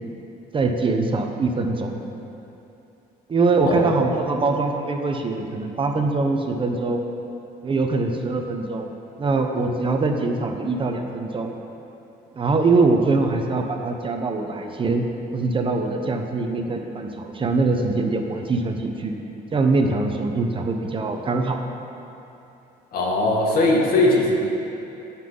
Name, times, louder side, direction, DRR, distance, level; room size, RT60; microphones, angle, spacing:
voice 1, 0.5-1.9 3.3-7.1 7.6-8.9 9.2-11.5 12.3-15.0 15.3-19.1 19.5-21.6, right 3 dB, 30° right, 3 dB, 1.0 m, -23 dB
voice 2, 3.6-4.0 22.9-24.4, left 2 dB, 65° left, -2 dB, 2.1 m, -19 dB
17.5 x 5.8 x 4.0 m, 2.9 s
cardioid pair, 110°, 17 cm